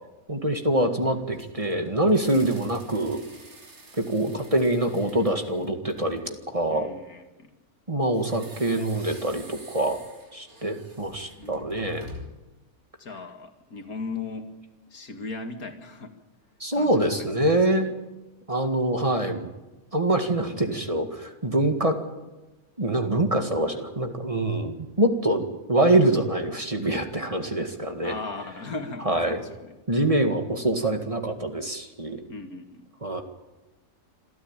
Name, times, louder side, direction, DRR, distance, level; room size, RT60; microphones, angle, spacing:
voice 1, 0.3-3.2 4.0-6.9 7.9-10.0 10.3-12.1 16.6-17.9 18.5-19.5 19.9-22.0 22.8-25.4 25.7-28.1 29.1-29.4 29.9-32.2 33.0-33.2, right 1 dB, 25° right, 5 dB, 2.0 m, -25 dB
sound 1, 1.0-6.4 8.1-12.5, equal, 75° right, 3.7 m, -47 dB
voice 2, 6.7-7.5 11.4-12.1 13.0-14.6 14.9-16.2 16.7-17.9 28.0-29.7 32.3-32.9, left 3 dB, 85° left, 6 dB, 2.6 m, -38 dB
26.5 x 14.0 x 9.0 m, 1.1 s
omnidirectional pair, 1.5 m